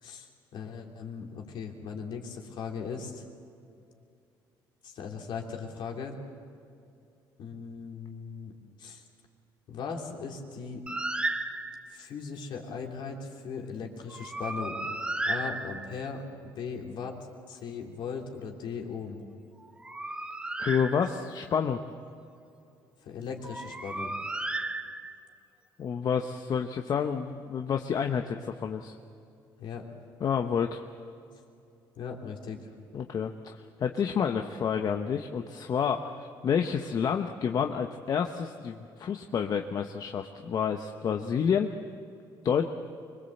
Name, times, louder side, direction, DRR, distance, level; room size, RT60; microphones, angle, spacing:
voice 1, 0.0-3.2 4.8-6.2 7.4-8.5 8.8-9.0 9.7-10.8 11.9-14.9 15.2-17.2 17.5-19.2 23.0-24.1 29.6-29.9 32.0-32.6, left 5 dB, 65° left, 1 dB, 3.4 m, -38 dB
Bird, 10.9-12.0 14.1-16.2 19.6-21.5 23.4-25.3, right 2 dB, 10° right, 1.0 m, -34 dB
voice 2, 20.6-21.8 25.8-28.9 30.2-30.8 32.9-41.7 42.4-42.7, left 7 dB, 50° left, 5 dB, 1.0 m, -29 dB
24.5 x 22.0 x 7.9 m, 2.5 s
cardioid pair, 105°, 8 cm